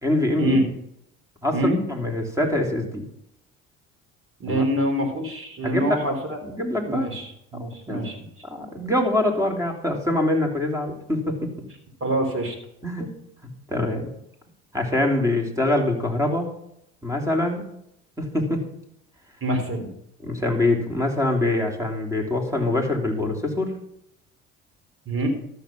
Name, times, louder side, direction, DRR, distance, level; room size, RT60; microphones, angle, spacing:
voice 1, 0.0-0.6 1.4-1.6 1.9-3.0 4.5-4.6 5.6-6.0 6.4-7.1 7.6-8.0 8.5-11.5 12.8-13.1 13.7-14.1 14.7-16.5 17.0-17.7 18.2-18.6 20.2-23.8, left 1 dB, 10° right, 2 dB, 3.2 m, -24 dB
voice 2, 4.4-6.4 6.9-8.2 12.0-12.6 19.4-19.9 25.1-25.3, right 1 dB, 40° right, 5 dB, 3.6 m, -25 dB
13.0 x 6.7 x 6.0 m, 0.76 s
hypercardioid pair, 70°, 34 cm